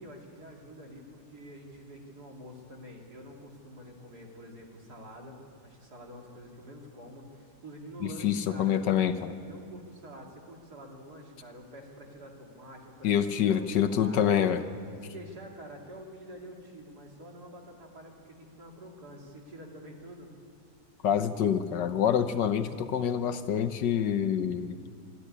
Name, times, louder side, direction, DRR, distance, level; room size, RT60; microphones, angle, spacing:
voice 1, 0.0-9.1 9.4-13.1 13.4-14.4 15.0-20.3, equal, 60° right, 0 dB, 3.3 m, -47 dB
voice 2, 8.0-9.3 13.0-14.6 21.0-24.8, left 9 dB, 75° left, 10 dB, 1.5 m, -26 dB
25.5 x 12.0 x 9.7 m, 2.2 s
omnidirectional pair, 1.9 m